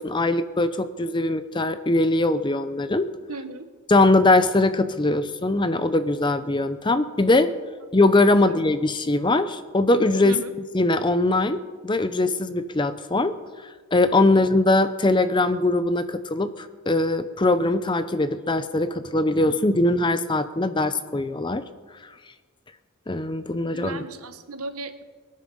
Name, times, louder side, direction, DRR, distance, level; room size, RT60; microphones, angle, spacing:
voice 1, 0.0-3.1 3.9-7.5 7.9-10.4 10.7-13.3 13.9-21.6 23.1-24.0, left 2 dB, 20° left, 12 dB, 0.6 m, -21 dB
voice 2, 3.3-3.7 8.4-8.6 10.2-10.5 14.3-14.4 23.6-25.0, right 3 dB, 80° right, 9 dB, 1.2 m, -36 dB
23.5 x 9.3 x 5.5 m, 1.4 s
head